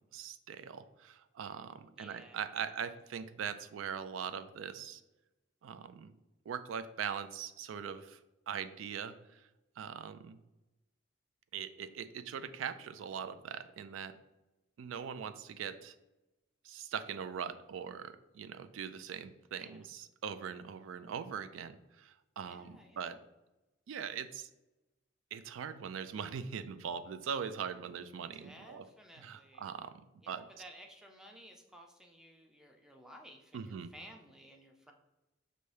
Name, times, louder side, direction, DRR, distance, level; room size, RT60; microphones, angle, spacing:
voice 1, 0.1-5.0 5.6-6.1 6.5-8.2 8.5-9.5 9.8-10.4 11.5-14.2 14.8-15.9 16.6-23.2 23.9-24.5 25.3-28.9 29.2-29.9 30.3-30.4 33.5-33.9, right 7 dB, 85° right, 12 dB, 0.3 m, -41 dB
voice 2, 1.9-2.5 19.6-19.8 22.5-23.2 28.3-29.7 30.2-34.9, equal, 5° right, 2 dB, 0.5 m, -55 dB
5.4 x 2.6 x 3.2 m, 1.0 s
head